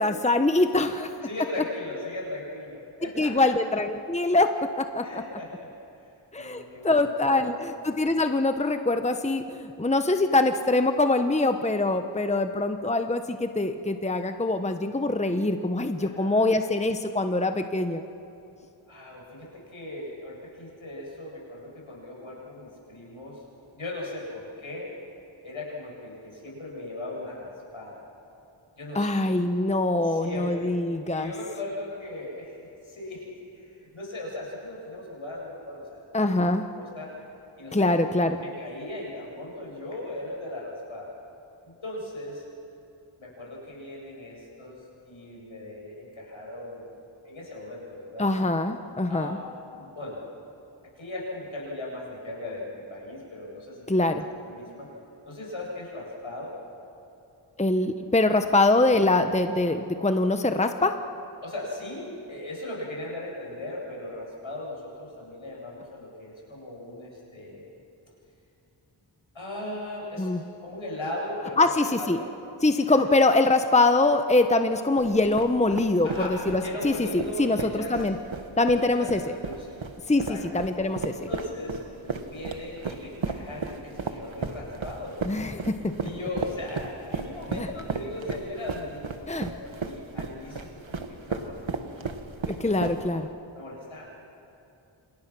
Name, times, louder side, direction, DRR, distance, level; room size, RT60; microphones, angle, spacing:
voice 1, 0.0-1.3 3.2-5.2 6.3-18.0 28.9-31.3 36.1-36.7 37.7-38.4 48.2-49.4 53.9-54.2 57.6-61.0 70.2-70.4 71.6-72.2 72.6-78.2 78.6-79.2 80.1-80.3 80.5-81.3 85.2-85.9 87.5-87.7 89.3-89.5 92.5-93.3, left 2 dB, 15° left, 7 dB, 1.0 m, -24 dB
voice 2, 1.2-3.5 5.0-5.7 6.0-7.6 16.0-16.5 18.9-23.4 23.7-24.9 25.4-28.0 28.8-29.2 30.0-30.7 31.1-36.1 36.7-37.1 37.6-41.1 41.6-42.5 43.2-46.9 47.2-48.3 49.1-49.3 49.7-50.2 51.0-53.8 54.1-54.9 55.3-56.6 61.4-67.7 69.3-70.3 70.6-72.2 72.8-73.0 76.0-78.0 78.7-79.8 80.2-80.4 81.3-81.8 82.2-85.2 86.0-92.1 92.5-92.8 93.0-93.1 93.5-94.0, left 1 dB, 75° left, -3 dB, 8.0 m, -38 dB
sound 1, 75.0-93.3, right 4 dB, 70° right, 1.6 m, -34 dB
27.5 x 27.0 x 6.2 m, 2.8 s
cardioid pair, 50°, 48 cm